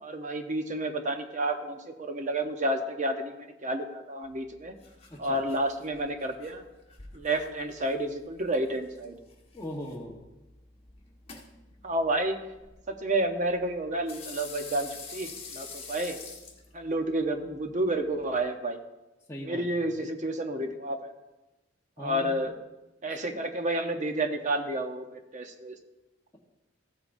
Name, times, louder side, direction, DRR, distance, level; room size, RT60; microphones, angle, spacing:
voice 1, 0.0-4.7 5.2-6.6 7.1-9.2 11.8-12.4 12.9-16.2 16.7-18.8 19.4-21.1 22.0-22.5 23.0-25.8, right 1 dB, 40° right, 5 dB, 0.8 m, -30 dB
sound 1, 4.2-18.5, left 5 dB, 30° left, 1.5 m, -48 dB
voice 2, 9.5-10.2 19.3-19.6 22.0-22.4 23.3-23.4, equal, 15° left, -3 dB, 1.1 m, -39 dB
15.5 x 8.1 x 2.6 m, 1.0 s
head